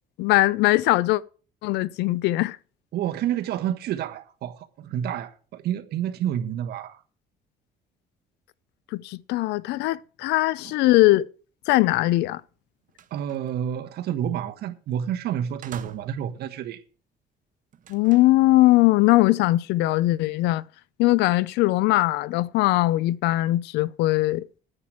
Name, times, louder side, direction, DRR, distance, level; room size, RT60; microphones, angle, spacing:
voice 1, 0.2-1.2 1.6-2.6 8.9-11.3 11.7-12.4 17.9-20.6 21.0-24.6, left 18 dB, 90° left, 0.6 m, -20 dB
voice 2, 2.9-7.0 10.6-10.7 13.1-16.8, right 10 dB, 70° right, 1.3 m, -29 dB
sound 1, 12.3-12.5 12.8-13.6 14.9-15.1 15.6-16.4 17.7-18.4, right 9 dB, 50° right, 1.1 m, -46 dB
9.7 x 8.7 x 6.3 m
cardioid pair, 110°, 17 cm